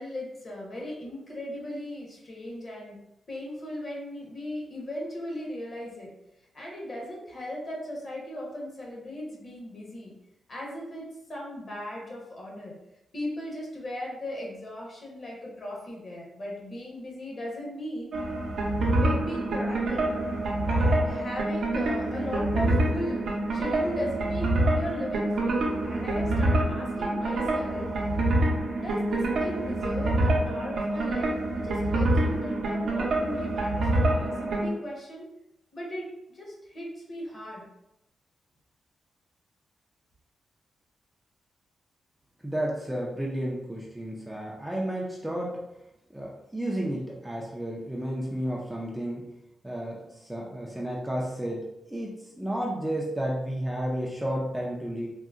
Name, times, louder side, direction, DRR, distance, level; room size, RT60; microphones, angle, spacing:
voice 1, 0.0-3.0 3.3-6.1 6.5-10.1 10.5-12.7 13.1-18.3 19.0-20.1 20.7-23.2 23.5-27.9 28.8-35.3 35.7-37.6, equal, 40° left, -3 dB, 1.0 m, -37 dB
sound 1, 18.1-34.7, right 1 dB, 65° right, 0.6 m, -26 dB
voice 2, 42.4-45.6 46.1-49.3 49.6-55.1, right 1 dB, 5° right, -3 dB, 0.4 m, -32 dB
3.7 x 2.1 x 2.4 m, 0.87 s
cardioid pair, 120°, 0 cm